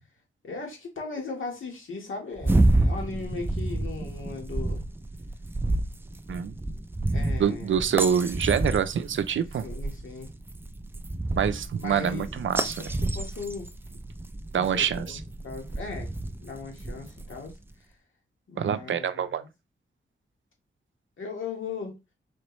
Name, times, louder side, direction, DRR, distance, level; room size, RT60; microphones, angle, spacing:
voice 1, 0.4-4.8 7.1-7.8 9.6-10.3 11.7-12.3 12.8-13.7 14.5-15.2 15.4-16.1 16.4-17.5 18.5-19.5 21.2-22.0, left 4 dB, 75° left, 1.5 m, -37 dB
sound 1, 2.4-17.5, right 2 dB, 10° right, 0.3 m, -29 dB
voice 2, 7.4-9.6 11.4-12.9 14.5-15.2 18.6-19.4, right 8 dB, 70° right, 0.5 m, -26 dB
4.3 x 3.0 x 3.0 m
wide cardioid pair, 85°, 21 cm